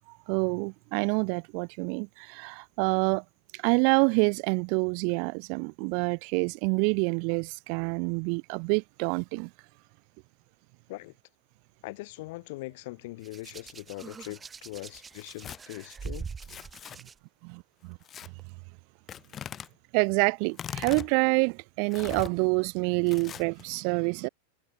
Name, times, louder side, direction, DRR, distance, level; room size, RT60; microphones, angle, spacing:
voice 1, 0.3-3.2 3.5-9.5 17.4-18.0 19.9-24.3, right 40 dB or more, 45° right, 1.4 m, -27 dB
voice 2, 11.8-16.2, left 21 dB, 50° left, 2.7 m, -41 dB
Hands, 13.2-17.1 18.2-18.4, right 5 dB, 15° right, 5.0 m, -43 dB
Tearing, 15.1-15.6 16.4-17.0 18.0-18.3 19.1-19.7 20.5-21.1 21.9-22.3 23.1-23.6, left 9 dB, 25° left, 1.6 m, -40 dB
figure-of-eight pair, 90°, 0 cm